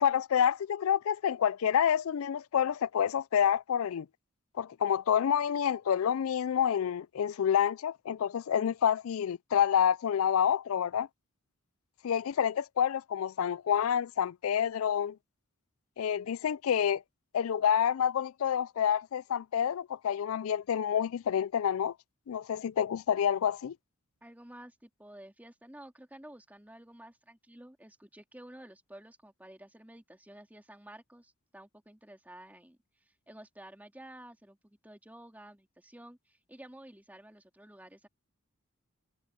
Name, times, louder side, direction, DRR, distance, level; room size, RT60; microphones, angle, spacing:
voice 1, 0.0-4.1 4.6-11.1 12.0-15.2 16.0-17.0 17.3-21.9 22.3-23.8, left 8 dB, 75° left, 0.4 m, -28 dB
voice 2, 24.2-38.1, right 1 dB, 10° right, 2.8 m, -52 dB
head